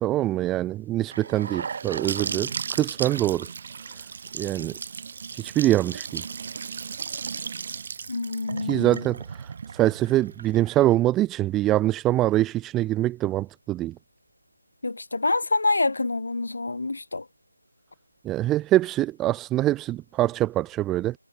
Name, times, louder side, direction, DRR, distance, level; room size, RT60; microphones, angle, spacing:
voice 1, 0.0-3.5 4.4-4.7 5.4-6.2 8.7-9.2 9.7-13.9 18.2-21.1, right 15 dB, 5° right, 0.7 m, -24 dB
Gurgling / Sink (filling or washing) / Bathtub (filling or washing), 1.1-10.9, right 6 dB, 30° right, 7.9 m, -35 dB
voice 2, 8.1-9.1 14.8-17.3, left 3 dB, 55° left, 5.3 m, -26 dB
figure-of-eight pair, 165°, 0 cm